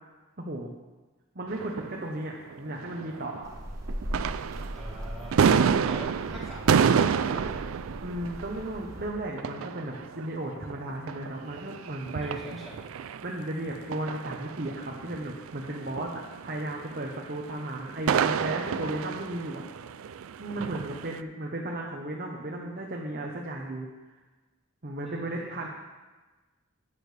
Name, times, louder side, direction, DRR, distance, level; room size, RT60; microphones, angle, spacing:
voice 1, 0.4-0.7 1.3-3.5 8.0-12.6 13.2-19.6 20.4-23.9 24.8-25.7, right 1 dB, 45° right, -1 dB, 1.0 m, -35 dB
sound 1, 1.5-3.6 3.9-21.2, right 6 dB, 75° right, 0.4 m, -30 dB
sound 2, 3.4-9.1, equal, 15° right, 1.4 m, -39 dB
voice 2, 4.7-7.6 12.2-12.8 25.0-25.5, equal, ahead, -9 dB, 3.3 m, -44 dB
13.0 x 8.8 x 3.4 m, 1.2 s
head